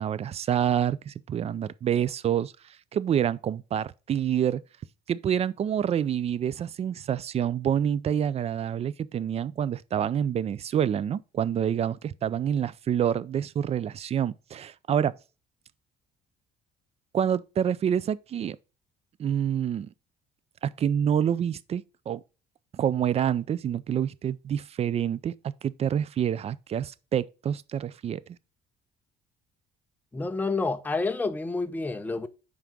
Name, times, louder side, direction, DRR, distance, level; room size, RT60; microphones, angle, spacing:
voice 1, 0.0-2.5 2.9-4.6 5.1-15.1 17.1-18.6 19.2-19.9 20.6-22.2 22.7-28.2, right 9 dB, 40° right, 0.4 m, -27 dB
voice 2, 30.1-32.3, left 3 dB, 10° left, 0.6 m, -29 dB
5.9 x 4.8 x 5.2 m
cardioid pair, 110°, 17 cm